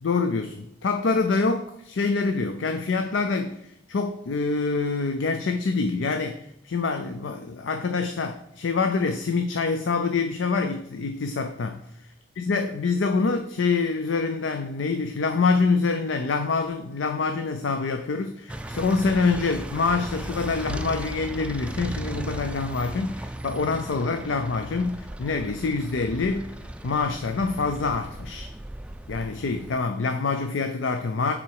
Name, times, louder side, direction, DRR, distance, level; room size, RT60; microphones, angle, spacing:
voice 1, 0.0-3.6 3.9-11.8 12.4-26.5 26.8-28.5 29.1-31.3, left 4 dB, 90° left, 7 dB, 0.5 m, -26 dB
sound 1, 18.5-29.8, right 1 dB, 5° right, 0.3 m, -36 dB
8.5 x 4.0 x 4.8 m, 0.77 s
head